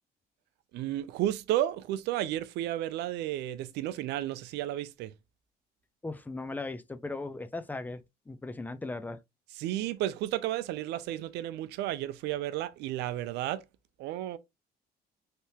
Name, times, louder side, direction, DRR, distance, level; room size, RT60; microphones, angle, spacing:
voice 1, 0.7-5.1 9.6-13.6 14.0-14.4, right 13 dB, 85° right, 0.5 m, -32 dB
voice 2, 6.0-8.0 8.3-9.2, left 2 dB, 10° left, 0.4 m, -37 dB
3.4 x 2.7 x 2.8 m
cardioid pair, 110°, 17 cm